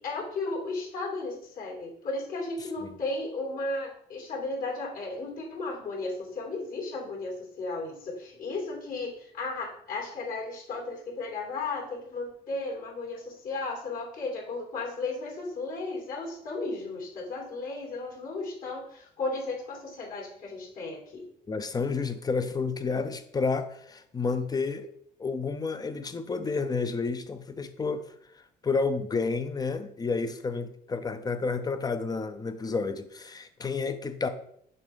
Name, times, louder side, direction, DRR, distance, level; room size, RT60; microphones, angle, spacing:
voice 1, 0.0-21.2, left 3 dB, 55° left, -1 dB, 2.8 m, -35 dB
voice 2, 21.5-24.9 25.2-28.0 28.3-34.3, left 4 dB, 25° left, 9 dB, 0.7 m, -30 dB
6.7 x 3.2 x 5.2 m, 0.67 s
cardioid pair, 110°, 17 cm